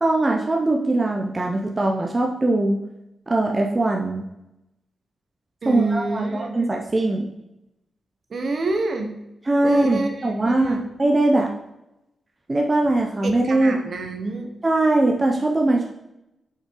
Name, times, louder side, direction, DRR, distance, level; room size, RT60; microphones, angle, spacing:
voice 1, 0.0-2.8 3.3-4.2 5.6-7.3 9.4-11.5 12.5-13.8 14.6-15.9, right 2 dB, 20° right, 0 dB, 0.7 m, -21 dB
voice 2, 5.6-6.6 8.3-9.1 9.6-10.8 13.2-14.5, right 3 dB, 50° right, 5 dB, 1.0 m, -27 dB
6.0 x 6.0 x 4.5 m, 0.89 s
wide cardioid pair, 145°, 0 cm